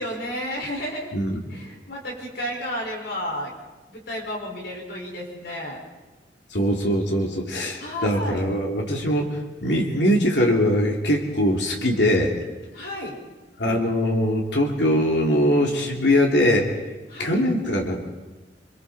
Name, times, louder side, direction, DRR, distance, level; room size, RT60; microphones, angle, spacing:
voice 1, 0.0-1.1 1.5-3.5 3.9-5.8 7.8-8.4 12.7-13.2 17.1-17.4, equal, 65° left, -1 dB, 5.2 m, -32 dB
voice 2, 6.5-12.3 13.6-16.7 17.2-18.0, equal, 90° left, 0 dB, 2.8 m, -22 dB
28.0 x 23.0 x 4.2 m, 1.2 s
head